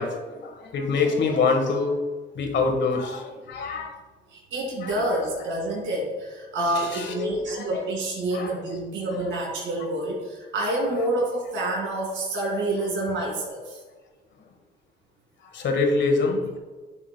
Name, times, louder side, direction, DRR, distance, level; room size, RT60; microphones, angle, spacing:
voice 1, 0.0-2.0 2.3-3.9 4.8-4.9 6.7-7.7 8.3-8.6 15.5-16.6, left 4 dB, 65° left, 4 dB, 1.5 m, -25 dB
voice 2, 4.3-13.8, right 1 dB, 75° right, -2 dB, 2.4 m, -28 dB
9.5 x 7.3 x 2.3 m, 1.3 s
cardioid pair, 90°, 20 cm